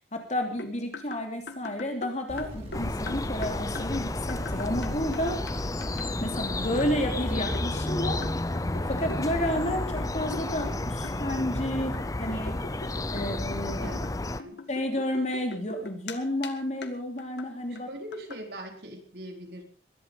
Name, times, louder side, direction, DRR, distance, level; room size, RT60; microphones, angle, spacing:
voice 1, 0.1-5.4 6.2-8.2 8.9-12.6 13.1-14.0 14.7-17.9, left 1 dB, 40° left, 4 dB, 3.1 m, -31 dB
sound 1, 0.6-5.2 5.5-5.6 5.8-6.0 6.8-7.0 7.5-10.8 11.0-11.6 11.9-16.2 16.4-16.5 16.8-16.9 17.2-17.5 17.8-17.9 18.1-18.4, left 3 dB, 80° left, 1.8 m, -42 dB
sound 2, 2.3-6.7, equal, 35° right, 6.1 m, -40 dB
sound 3, 2.7-14.4, left 2 dB, 20° left, 0.6 m, -31 dB
voice 2, 13.8-14.1 14.4-14.6 17.7-19.6, equal, 60° right, 3 dB, 4.2 m, -41 dB
21.5 x 11.5 x 5.2 m, 0.42 s
head